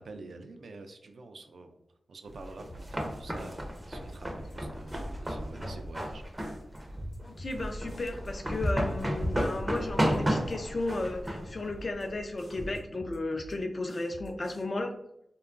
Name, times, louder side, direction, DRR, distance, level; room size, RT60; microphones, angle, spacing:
voice 1, 0.0-1.8 2.1-6.2, right 3 dB, 75° right, 6 dB, 0.3 m, -47 dB
sound 1, 2.3-12.8, equal, 20° right, 0.5 m, -33 dB
sound 2, 2.6-3.0 3.4-4.6 4.9-5.3 5.6-6.0 6.4-7.6 7.9-8.3 8.6-9.0 9.4-10.6 10.9-11.3 11.6-12.0 12.4-13.6 13.9-14.6, equal, 85° left, 0.8 m, -49 dB
voice 2, 7.2-14.9, left 2 dB, 50° left, 5 dB, 0.4 m, -34 dB
2.8 x 2.2 x 2.4 m, 0.79 s
cardioid pair, 60°, 0 cm